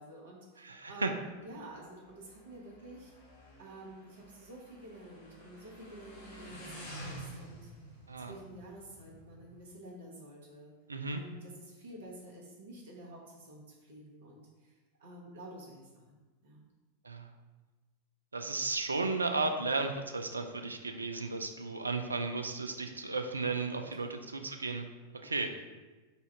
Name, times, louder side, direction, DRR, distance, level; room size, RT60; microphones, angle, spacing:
voice 1, 0.0-3.1 3.6-7.7 8.2-10.7 11.1-14.7 15.0-16.2 16.4-16.7 24.0-24.2, right 1 dB, 60° right, -3 dB, 1.1 m, -50 dB
voice 2, 0.6-1.1 8.1-8.3 10.9-11.2 17.0-17.3 18.3-24.1 24.3-24.9 25.2-25.6, right 3 dB, 80° right, 5 dB, 0.3 m, -34 dB
Motorcycle, 1.3-9.6, right 1 dB, 65° left, 1.4 m, -50 dB
4.0 x 2.4 x 4.2 m, 1.2 s
figure-of-eight pair, 90°, 0 cm